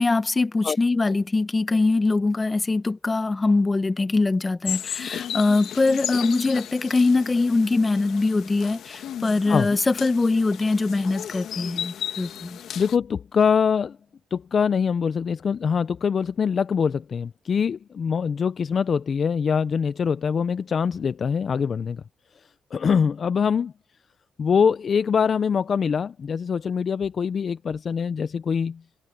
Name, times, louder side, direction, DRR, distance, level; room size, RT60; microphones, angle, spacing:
voice 1, 0.0-12.6, left 3 dB, 25° left, 1.5 m, -22 dB
sound 1, 4.6-13.0, left 9 dB, 70° left, 1.6 m, -35 dB
voice 2, 12.7-14.0 14.3-22.0 22.7-23.7 24.4-28.8, left 6 dB, 45° left, 0.6 m, -23 dB
cardioid pair, 90°, 0 cm